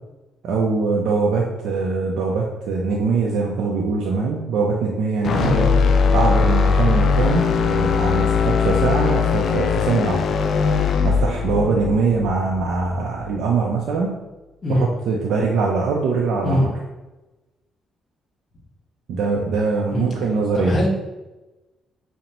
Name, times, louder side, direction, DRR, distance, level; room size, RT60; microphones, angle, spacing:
voice 1, 0.4-5.7 6.1-10.2 11.0-14.1 14.7-16.7 19.1-20.8, right 4 dB, 80° right, -2 dB, 0.5 m, -22 dB
sound 1, 5.2-13.4, left 5 dB, 60° left, 0.3 m, -20 dB
voice 2, 20.5-20.9, left 1 dB, 40° left, -2 dB, 1.2 m, -21 dB
5.1 x 2.1 x 2.9 m, 1.1 s
cardioid pair, 80°, 0 cm